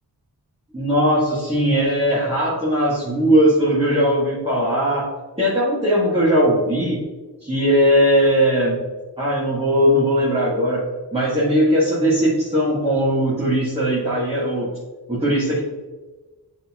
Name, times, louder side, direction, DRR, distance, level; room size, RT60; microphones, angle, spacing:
voice 1, 0.7-5.0 5.4-7.0 7.4-8.8 9.2-10.8 11.1-14.7 15.1-15.6, equal, 15° right, -11 dB, 1.9 m, -19 dB
8.4 x 4.2 x 3.0 m, 1.3 s
wide cardioid pair, 65°, 41 cm